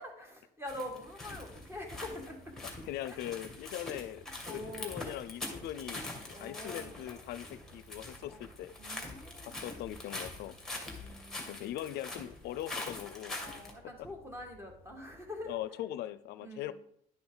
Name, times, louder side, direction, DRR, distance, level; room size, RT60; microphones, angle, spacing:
voice 1, 0.0-2.5 3.1-3.2 4.5-5.0 6.3-7.0 8.2-8.4 8.8-9.7 10.9-11.6 13.4-15.6 16.4-16.7, left 1 dB, 15° right, 2 dB, 1.9 m, -45 dB
sound 1, 0.7-13.7, left 2 dB, 5° left, 2.0 m, -44 dB
sound 2, 1.3-15.6, right 1 dB, 60° right, 1.5 m, -60 dB
voice 2, 2.6-8.7 9.4-10.6 11.5-13.3 14.0-14.1 15.4-16.7, left 13 dB, 75° left, 15 dB, 0.4 m, -41 dB
11.0 x 6.0 x 3.9 m, 0.72 s
cardioid pair, 110°, 17 cm